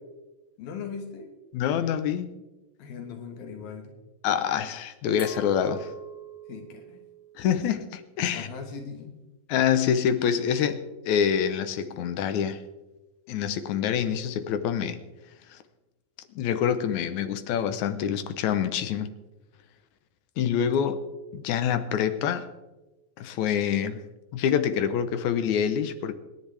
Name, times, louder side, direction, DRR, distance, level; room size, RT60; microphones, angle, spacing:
voice 1, 0.6-1.3 2.8-4.0 6.5-7.0 8.3-9.1, left 6 dB, 90° left, 3.4 m, -39 dB
voice 2, 1.5-2.3 4.2-5.9 7.4-8.5 9.5-12.6 13.3-15.0 15.5-15.6 16.4-19.1 20.4-21.0 21.3-22.5 23.2-24.0 24.3-26.1, left 8 dB, 70° left, 2.0 m, -26 dB
Glass, 5.2-8.0, right 5 dB, 35° left, 3.3 m, -43 dB
27.5 x 10.0 x 3.4 m
omnidirectional pair, 4.0 m